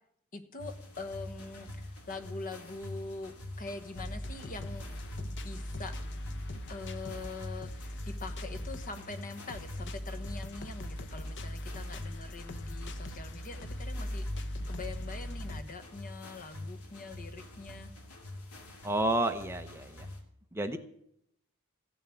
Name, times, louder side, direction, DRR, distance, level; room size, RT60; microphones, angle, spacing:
voice 1, 0.3-4.9 5.3-6.0 6.7-14.2 14.7-17.9, left 3 dB, 40° left, 9 dB, 1.2 m, -44 dB
sound 1, 0.6-20.2, left 1 dB, 75° left, 2.7 m, -45 dB
sound 2, 3.9-15.6, left 1 dB, 55° left, 0.9 m, -40 dB
voice 2, 18.8-20.1 20.5-20.8, right 1 dB, 10° right, 7 dB, 0.7 m, -30 dB
15.5 x 7.1 x 9.0 m, 0.72 s
head